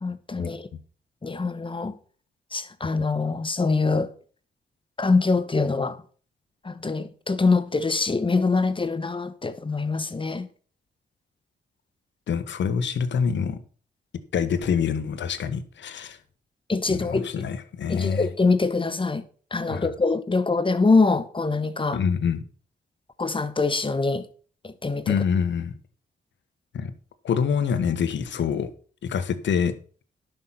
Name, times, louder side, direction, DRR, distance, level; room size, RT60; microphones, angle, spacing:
voice 1, 0.0-0.7 1.2-1.9 2.5-4.1 5.0-6.0 6.6-10.5 16.7-17.5 17.9-19.2 19.5-22.0 23.2-24.2 24.6-25.2, left 3 dB, 25° left, 1.2 m, -24 dB
voice 2, 12.3-13.6 14.3-16.2 16.9-18.3 19.7-19.9 21.9-22.4 25.1-25.7 26.7-26.9 27.2-28.7 29.0-29.7, left 7 dB, 70° left, 1.3 m, -25 dB
11.0 x 6.6 x 5.8 m
cardioid pair, 70°, 19 cm